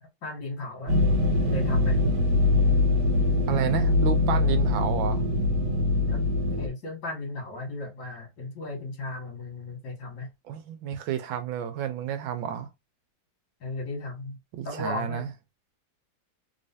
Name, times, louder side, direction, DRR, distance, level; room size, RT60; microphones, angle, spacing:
voice 1, 0.2-1.0 1.4-2.0 6.1-6.2 6.5-10.3 13.6-14.4 14.6-15.3, left 2 dB, 65° left, 2.0 m, -35 dB
sound 1, 0.9-6.7, left 2 dB, 45° right, 1.2 m, -23 dB
voice 2, 3.5-5.2 10.4-12.7 14.5-15.3, right 9 dB, 80° right, 1.4 m, -30 dB
3.5 x 3.1 x 2.7 m
omnidirectional pair, 2.1 m